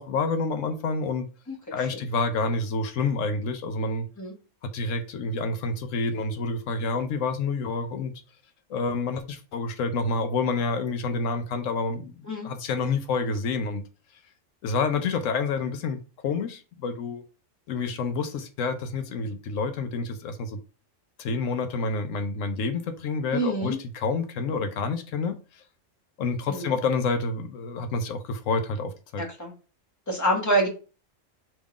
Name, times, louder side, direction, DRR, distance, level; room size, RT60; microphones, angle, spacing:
voice 1, 0.0-1.3 1.7-4.1 4.7-8.1 8.7-12.1 12.4-13.8 14.6-17.2 17.7-20.6 21.2-25.4 26.2-29.2, left 4 dB, 80° left, 1.0 m, -28 dB
voice 2, 23.3-23.8 26.5-26.7 29.2-29.5 30.1-30.7, right 1 dB, 15° left, 1.1 m, -26 dB
3.6 x 3.1 x 4.7 m
omnidirectional pair, 1.3 m